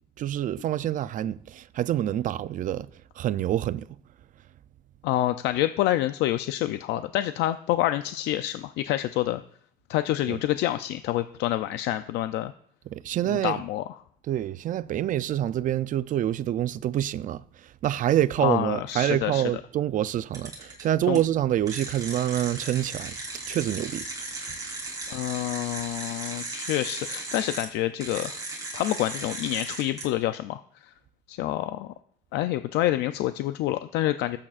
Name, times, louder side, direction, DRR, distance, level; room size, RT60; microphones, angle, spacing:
voice 1, 0.2-2.9 3.2-3.9 10.3-10.4 12.9-13.6 14.3-17.4 17.8-23.1 23.5-24.1, right 12 dB, 50° right, 0.5 m, -26 dB
voice 2, 5.0-9.4 9.9-12.5 13.2-13.8 18.4-19.4 21.1-21.2 25.1-28.3 28.7-30.6 31.3-31.9 32.3-34.4, left 14 dB, 85° left, 0.5 m, -27 dB
sound 1, 20.3-20.8 21.1-21.2 21.7-27.7 28.0-30.0, right 2 dB, 20° right, 3.9 m, -36 dB
20.5 x 8.6 x 2.4 m
cardioid pair, 110°, 17 cm